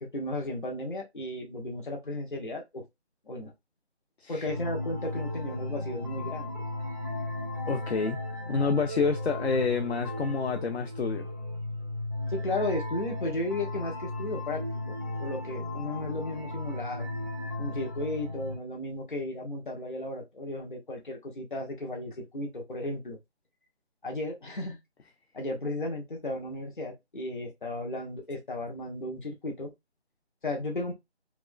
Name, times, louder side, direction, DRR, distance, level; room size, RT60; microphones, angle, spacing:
voice 1, 0.0-2.8 3.3-3.5 4.3-6.6 12.3-17.1 17.6-23.2 24.0-24.8 25.3-29.7 30.4-30.9, left 1 dB, 45° left, 1.3 m, -34 dB
sound 1, 4.4-18.6, left 2 dB, 15° left, 0.7 m, -35 dB
voice 2, 7.7-8.2 8.5-11.3, left 4 dB, 65° left, 0.6 m, -28 dB
4.6 x 2.3 x 2.2 m
figure-of-eight pair, 170°, 34 cm